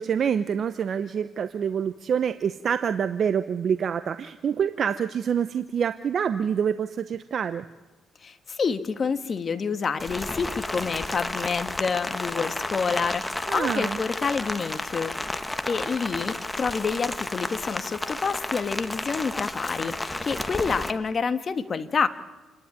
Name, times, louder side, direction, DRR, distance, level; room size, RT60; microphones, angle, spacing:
voice 1, 0.0-7.7 13.5-14.0, right 7 dB, 55° right, 11 dB, 0.8 m, -26 dB
voice 2, 8.2-22.1, left 5 dB, 40° left, 10 dB, 1.5 m, -28 dB
Rain, 10.0-20.9, left 2 dB, 15° left, 1.2 m, -32 dB
28.0 x 11.0 x 9.7 m, 1.2 s
cardioid pair, 90°, 0 cm